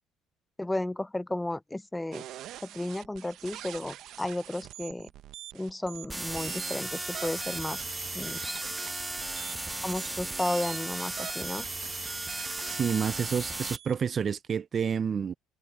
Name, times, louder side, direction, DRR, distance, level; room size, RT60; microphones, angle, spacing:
voice 1, 0.6-2.2 2.6-5.1 5.5-7.9 8.1-8.6 9.8-11.7, left 1 dB, 10° left, 0.7 m, -33 dB
sound 1, 2.1-14.0, right 13 dB, 65° right, 0.8 m, -45 dB
sound 2, 6.1-13.8, right 2 dB, 10° right, 1.0 m, -36 dB
voice 2, 12.7-15.3, right 7 dB, 40° right, 0.5 m, -29 dB
supercardioid pair, 85°, 0 cm